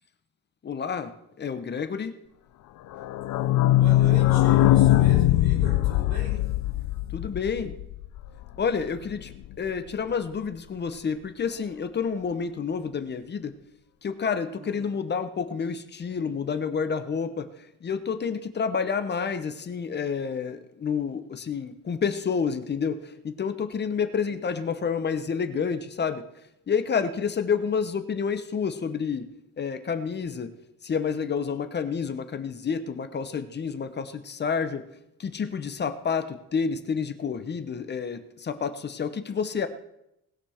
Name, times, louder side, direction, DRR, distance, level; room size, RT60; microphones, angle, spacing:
voice 1, 0.6-1.1 1.4-2.1 7.1-7.8 8.6-9.3 9.6-13.5 14.0-17.5 17.8-23.0 23.2-26.2 26.7-29.3 29.6-30.5 30.8-34.8 35.2-39.7, left 6 dB, 30° left, 10 dB, 0.9 m, -29 dB
sound 1, 2.9-8.5 8.8-8.9 9.1-9.2 9.5-9.6, left 15 dB, 60° left, 0.6 m, -21 dB
voice 2, 3.7-6.4 14.6-14.9 24.3-24.4, right 1 dB, 50° right, -6 dB, 5.0 m, -39 dB
19.5 x 6.9 x 4.4 m, 0.82 s
cardioid pair, 155°, 34 cm